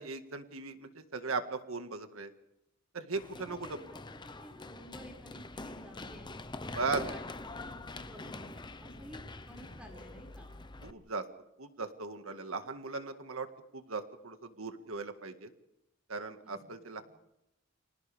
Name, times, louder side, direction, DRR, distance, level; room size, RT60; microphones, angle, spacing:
voice 1, 0.0-2.3 2.9-3.8 6.7-7.1 10.8-11.3 11.6-13.5 13.7-15.5 16.1-17.0, right 4 dB, 85° right, 7 dB, 1.8 m, -38 dB
Run, 3.1-10.9, left 2 dB, 20° left, 0.9 m, -44 dB
voice 2, 3.3-6.3 6.8-10.5 16.4-16.6 17.0-17.1, equal, 5° right, 1 dB, 5.9 m, -53 dB
30.0 x 25.5 x 3.5 m, 0.86 s
head